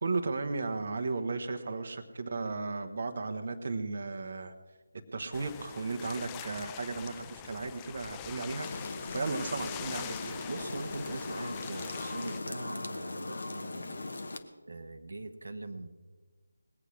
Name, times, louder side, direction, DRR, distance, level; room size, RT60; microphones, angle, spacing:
voice 1, 0.0-4.5 5.1-8.7 9.1-10.4, right 3 dB, 45° right, 5 dB, 1.1 m, -35 dB
sound 1, 5.3-12.4, left 12 dB, 15° left, 0.3 m, -44 dB
sound 2, 8.6-14.4, left 2 dB, 55° left, 1.2 m, -39 dB
voice 2, 10.5-14.0 14.7-15.9, right 2 dB, 65° right, 8 dB, 1.1 m, -41 dB
20.0 x 8.4 x 6.2 m, 1.3 s
figure-of-eight pair, 160°, 0 cm